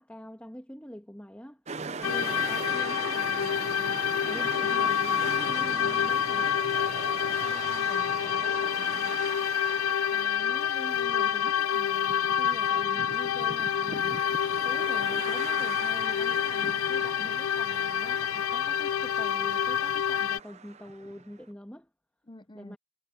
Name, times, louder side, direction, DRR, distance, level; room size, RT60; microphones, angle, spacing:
voice 1, 0.0-1.6 2.1-6.5 10.1-14.3 14.6-21.9 22.5-22.8, equal, 5° left, 1.8 m, -45 dB
sound 1, 1.7-21.2, right 5 dB, 30° right, 0.8 m, -39 dB
sound 2, 2.0-20.4, left 9 dB, 80° left, 0.4 m, -28 dB
voice 2, 7.4-9.2 22.3-22.8, left 2 dB, 20° left, 0.7 m, -47 dB
head